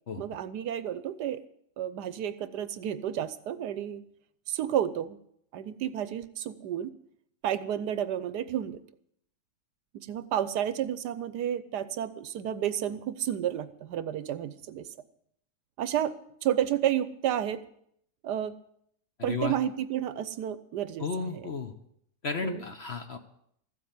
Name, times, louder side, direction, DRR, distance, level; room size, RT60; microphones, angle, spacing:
voice 1, 0.2-1.4 1.8-4.0 4.5-5.2 5.5-7.0 7.4-8.8 9.9-14.9 15.8-16.1 16.4-17.6 18.2-18.5 19.2-21.4 22.4-22.6, right 10 dB, 70° right, 14 dB, 1.3 m, -31 dB
voice 2, 19.2-19.5 21.0-21.7 22.2-23.2, left 4 dB, 45° left, 7 dB, 1.1 m, -33 dB
14.0 x 7.8 x 9.5 m, 0.69 s
omnidirectional pair, 1.9 m